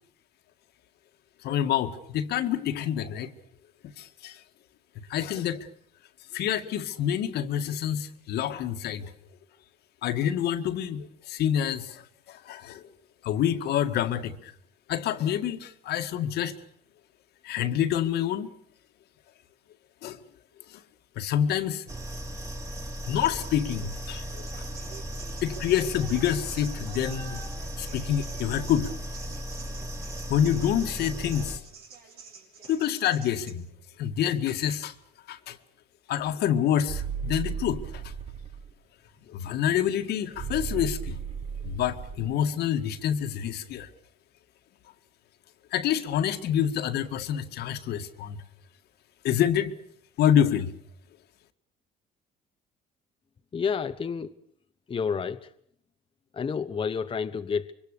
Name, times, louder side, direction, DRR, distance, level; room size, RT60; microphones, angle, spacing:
voice 1, 1.4-3.3 4.0-4.4 5.1-5.7 6.3-9.1 10.0-12.9 13.2-14.5 14.9-16.6 17.4-18.5 20.0-20.2 20.7-20.8 21.2-21.8 23.0-24.7 25.4-27.4 27.8-28.9 30.3-31.6 32.7-33.7 34.0-34.9 35.3-35.6 36.1-38.1 39.3-41.2 41.6-43.9 45.7-48.4 49.2-49.7 50.2-50.7, left 10 dB, 75° left, 2.0 m, -27 dB
sound 1, 21.9-31.6, equal, 20° right, 3.3 m, -36 dB
sound 2, 24.3-33.5, right 6 dB, 70° right, 6.4 m, -47 dB
sound 3, 36.9-38.7 40.3-42.3, right 7 dB, 40° right, 1.3 m, -35 dB
voice 2, 53.5-54.4 54.9-55.5 56.3-57.7, left 6 dB, 30° left, 1.1 m, -29 dB
25.5 x 24.0 x 6.8 m
cardioid pair, 110°, 17 cm